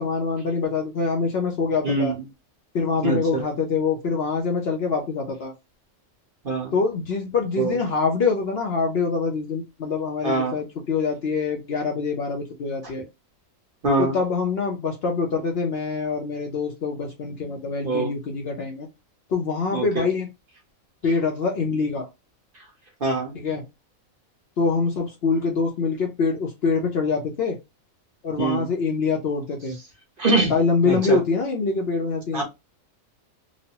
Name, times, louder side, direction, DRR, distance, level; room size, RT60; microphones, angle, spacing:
voice 1, 0.0-2.1 2.7-5.5 6.7-13.0 14.0-18.9 19.3-20.3 21.0-22.1 23.3-23.6 24.6-27.6 28.2-29.8 30.5-32.4, left 4 dB, 60° left, 0.7 m, -25 dB
voice 2, 1.8-2.2 3.0-3.4 6.4-6.7 7.6-7.7 10.2-10.5 13.8-14.1 17.8-18.1 19.7-19.8 23.0-23.3 28.4-28.7 30.2-30.5 30.8-31.2 32.3-32.4, right 3 dB, 45° right, 1.0 m, -23 dB
3.0 x 2.0 x 2.7 m
omnidirectional pair, 1.4 m